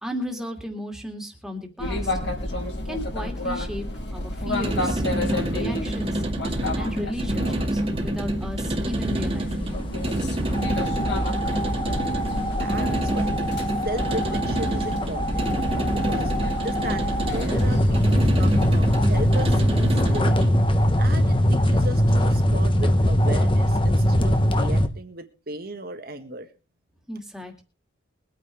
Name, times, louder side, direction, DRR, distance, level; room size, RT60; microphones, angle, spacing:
voice 1, 0.0-2.2 2.8-5.0 5.3-6.2 6.8-9.8 27.1-27.6, left 1 dB, ahead, 2 dB, 2.4 m, -35 dB
sound 1, 1.8-20.3, left 1 dB, 55° left, 4.9 m, -31 dB
sound 2, 4.4-20.6, right 1 dB, 30° right, 2.1 m, -28 dB
sound 3, 10.5-24.9, equal, 25° left, 1.1 m, -22 dB
voice 2, 12.6-13.3 13.8-15.5 15.9-20.6 21.0-26.5, right 1 dB, 50° right, 7 dB, 1.7 m, -35 dB
23.0 x 9.2 x 3.4 m, 0.33 s
head